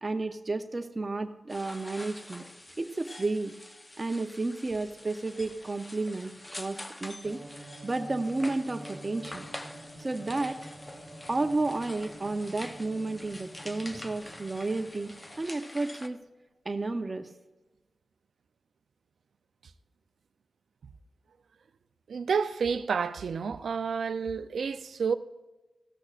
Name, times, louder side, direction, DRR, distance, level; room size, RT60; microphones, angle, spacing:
voice 1, 0.0-2.4 2.8-3.5 4.0-7.4 7.8-9.5 10.0-10.6 11.3-16.2 16.7-17.3, right 2 dB, 35° right, 0.7 m, -32 dB
sound 1, 1.5-16.1, left 1 dB, 20° left, 0.8 m, -46 dB
sound 2, 7.2-15.4, right 1 dB, 5° right, 4.6 m, -48 dB
voice 2, 22.1-25.1, right 6 dB, 85° right, 0.5 m, -30 dB
16.0 x 13.0 x 2.5 m
cardioid pair, 65°, 0 cm